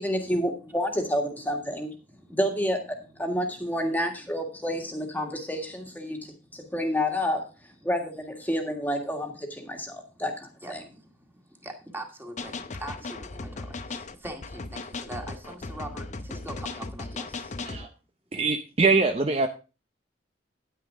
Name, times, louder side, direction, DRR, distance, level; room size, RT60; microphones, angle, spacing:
voice 1, 0.0-1.9 2.3-2.8 3.2-6.2 6.5-7.5 7.8-10.8, equal, 10° left, 3 dB, 1.8 m, -29 dB
voice 2, 11.6-17.5, right 1 dB, 10° right, 2 dB, 2.0 m, -41 dB
sound 1, 12.4-17.9, left 3 dB, 40° left, 0.7 m, -37 dB
voice 3, 18.3-19.5, right 3 dB, 35° right, 6 dB, 0.6 m, -23 dB
10.0 x 9.6 x 3.6 m, 0.32 s
head